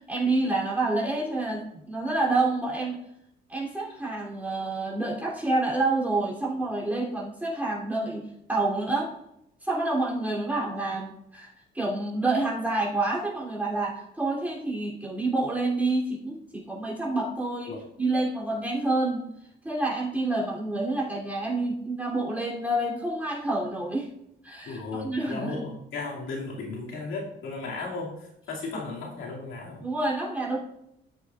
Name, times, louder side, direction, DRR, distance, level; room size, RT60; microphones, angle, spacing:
voice 1, 0.1-3.0 3.5-9.1 9.6-19.2 19.6-24.1 24.4-25.6 28.7-28.8 29.8-30.6, right 2 dB, 10° right, -5 dB, 3.2 m, -28 dB
voice 2, 24.7-29.8, left 3 dB, 85° left, -3 dB, 2.6 m, -35 dB
13.0 x 6.7 x 2.5 m, 0.78 s
cardioid pair, 90°, 20 cm